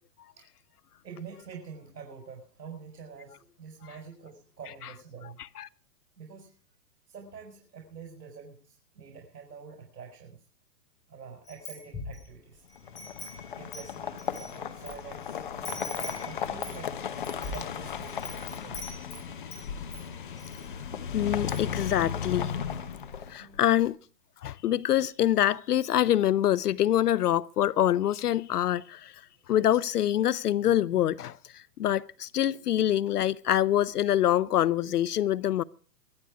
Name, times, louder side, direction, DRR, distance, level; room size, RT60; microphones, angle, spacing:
voice 1, 1.0-5.4 6.2-6.5 7.1-10.4 11.1-12.6 13.5-16.9 17.5-19.0 23.4-23.8, right 6 dB, 85° right, 4.8 m, -46 dB
Wind chime, 11.5-12.3 12.7-14.9 15.2-15.3 15.6-19.6 19.9-20.6 21.0-21.1 21.3-21.8, left 2 dB, 10° left, 3.9 m, -42 dB
sound 1, 12.8-23.6, left 7 dB, 30° left, 0.9 m, -36 dB
voice 2, 21.1-23.0 23.3-24.0 24.4-29.2 29.5-35.6, left 12 dB, 70° left, 0.6 m, -25 dB
23.5 x 8.2 x 4.8 m
hypercardioid pair, 175°, 48 cm